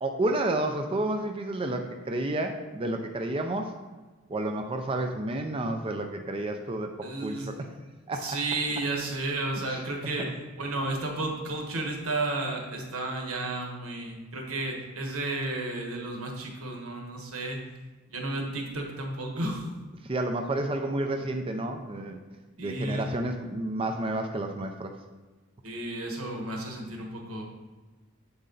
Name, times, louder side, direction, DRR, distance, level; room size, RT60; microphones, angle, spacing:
voice 1, 0.0-3.7 4.3-7.7 8.1-8.4 9.7-9.8 20.1-22.2 22.6-24.9, right 1 dB, 25° right, 4 dB, 0.4 m, -30 dB
voice 2, 7.0-7.6 8.1-17.6 18.1-19.7 22.6-23.1 25.6-27.4, right 2 dB, 90° right, 1 dB, 1.3 m, -32 dB
7.8 x 4.2 x 3.9 m, 1.3 s
head